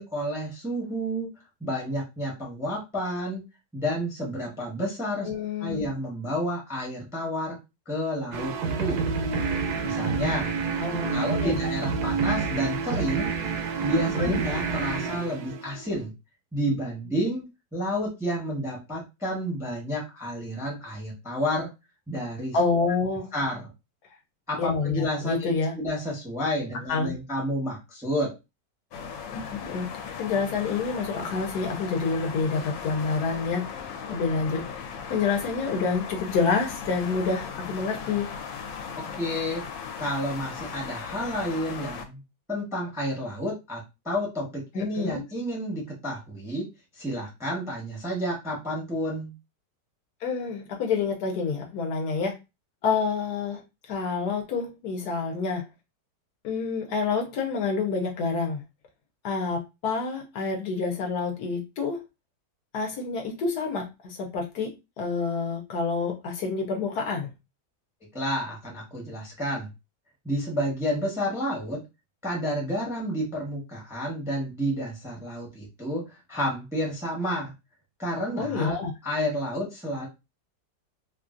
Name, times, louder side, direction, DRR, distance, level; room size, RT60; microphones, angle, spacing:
voice 1, 0.0-1.3 1.6-3.4 3.7-5.3 5.6-7.6 7.9-9.1 9.8-10.5 11.1-13.3 13.8-16.1 16.5-21.7 22.1-22.6 23.3-23.6 24.5-28.4 39.2-39.6 40.0-42.2 42.5-46.7 47.0-49.3 68.1-69.7 70.2-71.8 72.2-77.5 78.0-78.8 79.0-80.1, equal, 5° right, 0.6 m, -30 dB
voice 2, 5.2-5.9 10.8-11.5 14.1-14.4 22.5-23.3 24.6-25.7 26.9-27.1 29.3-29.9 30.2-38.3 44.7-45.2 50.2-52.4 52.8-55.6 56.4-58.6 59.2-62.0 62.7-67.3 78.4-78.9, left 4 dB, 70° left, 1.1 m, -28 dB
sound 1, 8.3-16.0, right 5 dB, 70° right, 1.1 m, -28 dB
sound 2, 28.9-42.0, left 6 dB, 85° left, 1.3 m, -37 dB
3.0 x 2.3 x 2.5 m
omnidirectional pair, 1.9 m